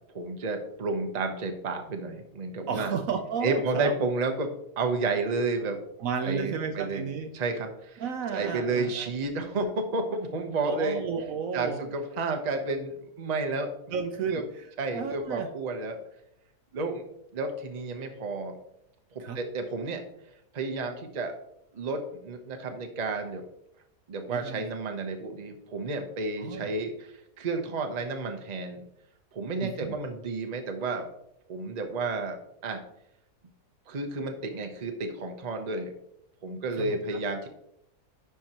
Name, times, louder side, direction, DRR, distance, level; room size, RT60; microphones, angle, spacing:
voice 1, 0.1-2.9 3.4-4.5 4.8-5.8 6.2-7.0 7.3-8.0 8.3-11.0 11.5-13.7 14.3-14.4 14.8-16.0 16.7-17.0 17.3-18.6 19.1-20.0 20.5-21.3 21.7-23.5 24.1-28.8 29.3-31.1 31.5-32.4 32.6-32.8 33.9-35.9 36.4-37.5, right 3 dB, 35° right, 5 dB, 0.8 m, -31 dB
voice 2, 2.7-3.9 6.0-7.3 8.0-9.1 10.6-11.8 13.9-15.5 19.2-19.4 24.3-24.6 26.4-26.7 29.6-30.0 36.8-37.2, right 6 dB, 70° right, 6 dB, 1.0 m, -32 dB
10.5 x 4.7 x 2.9 m, 0.77 s
omnidirectional pair, 1.7 m